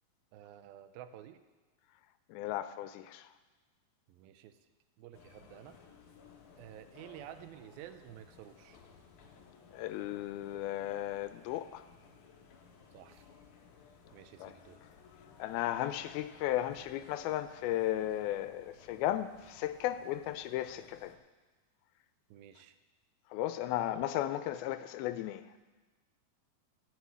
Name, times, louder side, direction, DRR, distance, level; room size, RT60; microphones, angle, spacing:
voice 1, 0.3-1.4 4.1-4.6 5.0-5.8 6.6-8.8 12.9-13.3 14.1-14.8 22.3-22.8, right 11 dB, 80° right, 2.5 m, -51 dB
voice 2, 2.3-3.3 9.7-11.8 14.4-14.5 15.4-21.2 23.3-25.4, left 13 dB, 85° left, 2.5 m, -35 dB
sound 1, 5.1-21.2, left 5 dB, 65° left, 2.3 m, -58 dB
16.0 x 6.5 x 8.2 m
omnidirectional pair, 4.3 m